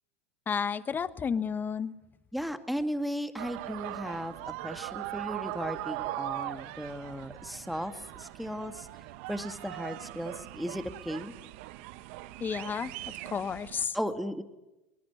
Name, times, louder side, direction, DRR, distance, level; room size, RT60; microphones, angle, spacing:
voice 1, 0.5-1.9 12.4-12.9 13.3-13.9, left 6 dB, 25° left, 14 dB, 1.3 m, -31 dB
voice 2, 2.3-4.4 4.6-8.9 9.3-11.3 13.9-14.4, equal, ahead, 7 dB, 2.1 m, -36 dB
sound 1, 3.4-13.9, right 17 dB, 65° right, 1.2 m, -40 dB
23.0 x 20.5 x 9.7 m, 1.0 s
hypercardioid pair, 95°, 7 cm